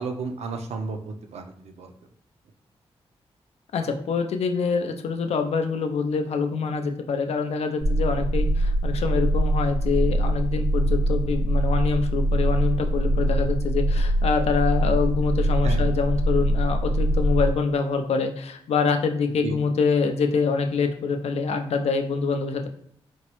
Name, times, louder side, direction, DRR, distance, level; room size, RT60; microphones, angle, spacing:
voice 1, 0.0-1.9 15.6-15.8 19.4-19.6, right 4 dB, 85° right, 6 dB, 0.5 m, -32 dB
voice 2, 3.7-22.7, left 5 dB, 75° left, 6 dB, 0.4 m, -25 dB
sound 1, 7.8-17.5, right 1 dB, 35° right, 0.6 m, -23 dB
4.3 x 2.0 x 2.9 m, 0.68 s
wide cardioid pair, 175°, 11 cm